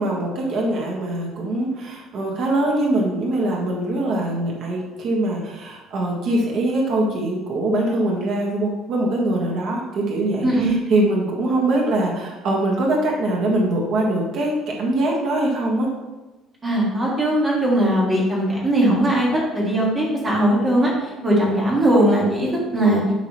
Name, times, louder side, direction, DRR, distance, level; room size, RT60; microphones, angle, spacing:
voice 1, 0.0-14.5 14.8-15.9, right 1 dB, 50° right, -2 dB, 1.6 m, -22 dB
voice 2, 16.6-23.0, right 1 dB, 20° right, -4 dB, 1.9 m, -19 dB
11.5 x 3.9 x 3.1 m, 1.1 s
cardioid pair, 180°, 0 cm